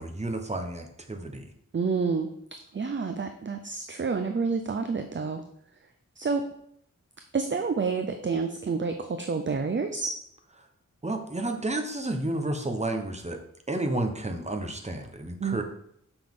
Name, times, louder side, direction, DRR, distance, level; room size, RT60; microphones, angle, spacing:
voice 1, 0.0-1.4 11.0-13.4 13.7-15.6, right 2 dB, 20° right, 4 dB, 1.0 m, -31 dB
voice 2, 1.7-2.3 2.7-5.4 6.2-6.5 7.3-10.1 15.4-15.6, right 4 dB, 40° right, 7 dB, 0.5 m, -28 dB
6.8 x 5.8 x 3.7 m, 0.71 s
wide cardioid pair, 70°, 31 cm